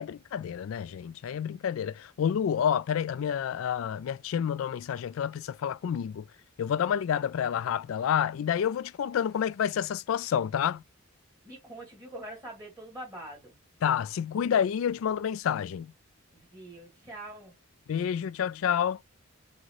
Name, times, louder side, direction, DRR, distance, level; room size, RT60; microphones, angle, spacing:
voice 1, 0.0-6.2 6.6-10.8 13.8-15.9 17.9-19.0, left 8 dB, 75° left, 0.3 m, -29 dB
voice 2, 11.4-13.6 16.3-17.5, right 1 dB, 20° right, 2.5 m, -44 dB
6.2 x 2.1 x 3.1 m
head